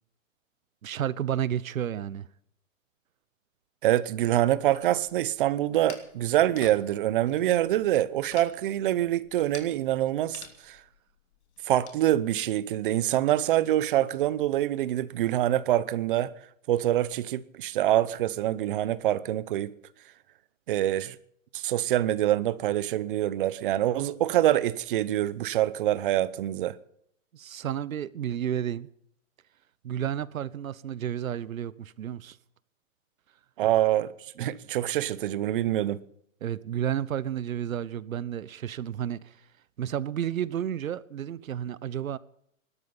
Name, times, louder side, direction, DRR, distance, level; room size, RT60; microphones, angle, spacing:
voice 1, 0.8-2.3 27.3-28.9 29.8-32.4 34.4-34.5 36.4-39.4 39.8-42.2, right 10 dB, 85° right, 1.0 m, -31 dB
voice 2, 3.8-10.8 11.7-16.3 16.7-19.7 20.7-21.2 21.5-26.8 33.6-34.1 34.4-36.0, right 13 dB, 40° right, 0.9 m, -25 dB
sound 1, 4.7-12.0, left 8 dB, 55° left, 2.9 m, -51 dB
19.5 x 12.5 x 5.5 m
hypercardioid pair, 155°, 40 cm